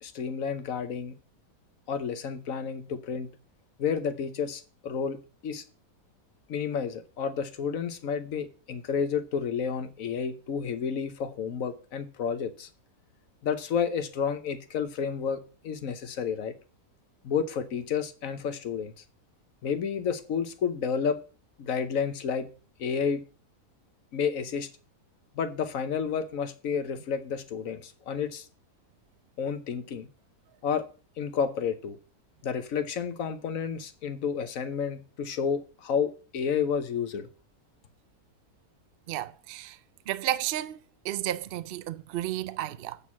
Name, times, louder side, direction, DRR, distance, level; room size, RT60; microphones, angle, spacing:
voice 1, 0.0-1.1 1.9-3.3 3.8-5.2 5.4-5.6 6.5-12.7 13.4-16.5 17.2-18.9 19.6-21.2 21.6-22.5 22.8-23.2 24.1-24.7 25.4-28.5 29.4-30.1 30.6-30.9 31.2-32.0 32.4-37.3, left 6 dB, 65° left, 1.2 m, -30 dB
voice 2, 39.1-39.8 40.1-40.8 41.0-43.0, right 13 dB, 80° right, 0.5 m, -32 dB
8.4 x 4.5 x 7.0 m
omnidirectional pair, 1.6 m